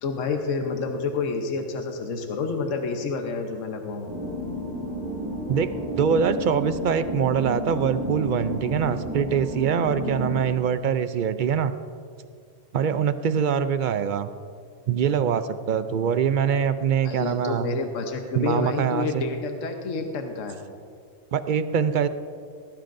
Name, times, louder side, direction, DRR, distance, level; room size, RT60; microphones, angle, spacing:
voice 1, 0.0-4.1 17.0-20.6, left 4 dB, 75° left, 4 dB, 1.3 m, -29 dB
sound 1, 4.1-10.4, equal, 15° right, 3.1 m, -31 dB
voice 2, 6.0-11.7 12.7-14.3 14.9-17.7 18.3-19.2 21.3-22.1, right 7 dB, 60° right, 11 dB, 0.5 m, -23 dB
18.0 x 15.0 x 2.6 m, 2.2 s
omnidirectional pair, 1.3 m